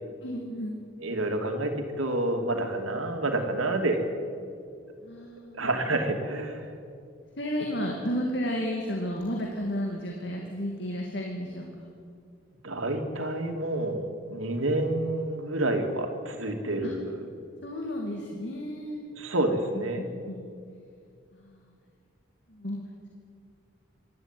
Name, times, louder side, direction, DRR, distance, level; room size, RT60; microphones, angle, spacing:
voice 1, 0.2-0.8 5.0-5.6 7.4-11.9 16.8-16.9 17.6-19.1 19.7-20.5 21.3-21.7 22.5-22.8, equal, 55° left, 0 dB, 2.5 m, -33 dB
voice 2, 1.0-4.0 5.5-6.7 12.6-17.1 19.2-20.0, right 2 dB, 90° right, 4 dB, 2.7 m, -28 dB
26.0 x 13.0 x 9.2 m, 2.3 s
head